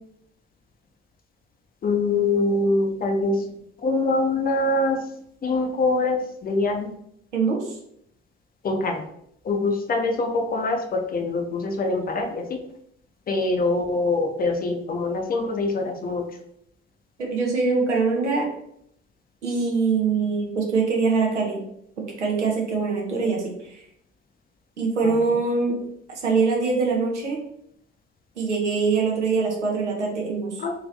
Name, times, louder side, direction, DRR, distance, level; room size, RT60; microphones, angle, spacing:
voice 1, 1.8-3.4 3.8-5.1 5.4-6.9 8.6-9.0 9.4-12.6 13.3-16.2 25.0-25.1 30.6-30.7, left 2 dB, 25° left, 3 dB, 0.6 m, -24 dB
voice 2, 7.3-7.8 17.2-18.5 19.4-21.6 22.0-23.4 23.7-23.8 24.8-25.8 26.2-27.4 28.4-30.6, right 4 dB, 80° right, -1 dB, 0.8 m, -23 dB
3.6 x 2.9 x 3.2 m, 0.73 s
figure-of-eight pair, 60°, 35 cm